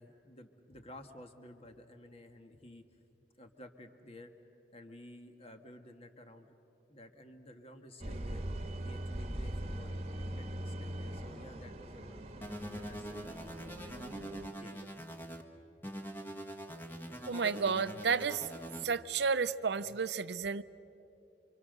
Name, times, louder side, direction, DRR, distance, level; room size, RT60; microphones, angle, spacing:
voice 1, 0.0-2.8 3.4-4.3 4.7-6.5 6.9-8.5 8.8-13.9 14.6-14.9, left 1 dB, 35° left, 6 dB, 1.6 m, -53 dB
sound 1, 8.0-14.5, right 1 dB, 35° right, 1.3 m, -41 dB
sound 2, 12.4-15.4 15.8-18.8, equal, 10° left, 1.6 m, -44 dB
voice 2, 17.3-18.5 18.8-20.6, right 5 dB, 70° right, 14 dB, 0.6 m, -32 dB
28.5 x 25.5 x 6.7 m, 2.9 s
head